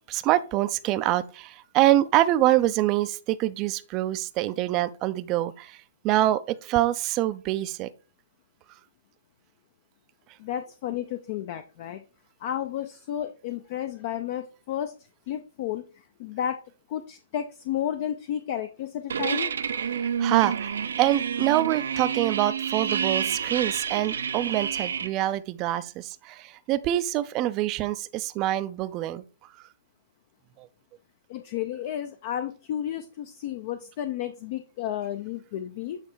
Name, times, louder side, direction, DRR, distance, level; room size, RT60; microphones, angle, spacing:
voice 1, 0.1-5.8 6.0-7.9 20.2-29.2 30.6-30.7, right 14 dB, 25° right, 0.5 m, -25 dB
voice 2, 10.4-12.0 12.4-14.9 15.3-16.6 16.9-19.5 31.3-36.0, left 10 dB, 40° left, 0.5 m, -32 dB
sound 1, 19.1-25.1, right 7 dB, 80° right, 0.6 m, -29 dB
8.2 x 3.2 x 4.6 m
hypercardioid pair, 155°, 0 cm